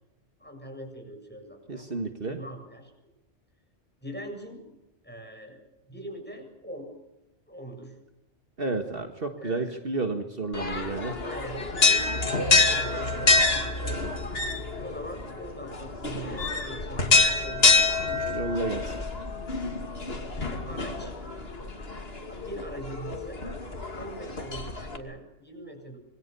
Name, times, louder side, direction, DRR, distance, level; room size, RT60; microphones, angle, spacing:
voice 1, 0.4-1.9 2.2-2.9 4.0-4.6 5.0-6.9 7.5-8.0 9.4-9.8 11.2-13.9 14.8-18.3 20.3-21.1 22.0-23.4 23.9-26.0, right 1 dB, 10° left, 2 dB, 7.3 m, -42 dB
voice 2, 1.7-2.4 8.6-11.2 18.3-19.0, right 3 dB, 50° right, 5 dB, 1.9 m, -31 dB
sound 1, 10.5-25.0, left 3 dB, 55° left, 2.8 m, -26 dB
26.5 x 22.5 x 6.9 m, 0.94 s
omnidirectional pair, 1.2 m